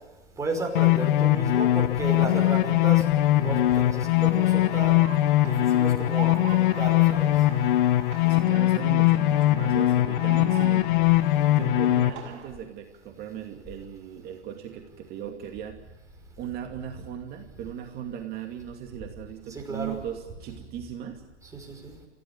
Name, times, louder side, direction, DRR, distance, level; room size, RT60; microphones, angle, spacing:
voice 1, 0.4-3.1 3.3-5.0 5.4-7.3 19.5-20.0 21.4-22.0, right 2 dB, 10° right, 1 dB, 5.6 m, -33 dB
sound 1, 0.7-12.1, left 15 dB, 45° left, 1.3 m, -21 dB
sound 2, 2.9-12.5, right 7 dB, 45° right, 6.0 m, -44 dB
voice 2, 8.3-10.9 11.5-15.8 16.4-21.2, right 9 dB, 25° right, 3 dB, 2.5 m, -38 dB
27.0 x 16.0 x 8.8 m, 1.2 s
hypercardioid pair, 125°, 36 cm